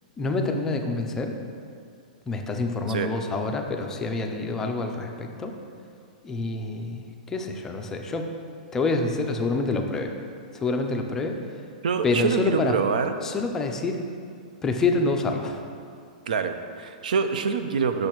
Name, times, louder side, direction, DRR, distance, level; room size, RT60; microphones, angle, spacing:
voice 1, 0.2-1.4 2.3-5.5 6.2-8.3 8.7-10.1 10.5-11.4 12.0-12.7 13.2-14.0 14.6-15.6, left 3 dB, 10° left, 3 dB, 0.4 m, -27 dB
voice 2, 11.8-13.1 16.3-18.1, right 6 dB, 70° right, 9 dB, 0.6 m, -25 dB
8.4 x 6.3 x 3.0 m, 2.4 s
hypercardioid pair, 165°, 5 cm